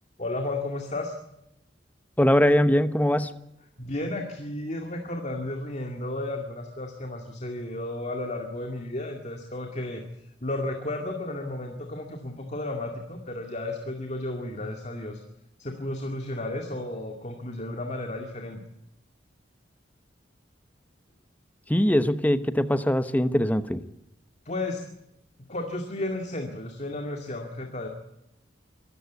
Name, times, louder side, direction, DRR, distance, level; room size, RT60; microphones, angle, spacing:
voice 1, 0.2-1.1 3.8-15.2 15.6-18.6 24.5-24.8 25.5-27.9, left 2 dB, 40° left, 3 dB, 2.3 m, -33 dB
voice 2, 2.2-3.3 21.7-23.8, equal, 10° left, 12 dB, 1.0 m, -22 dB
24.5 x 14.0 x 8.2 m, 0.85 s
head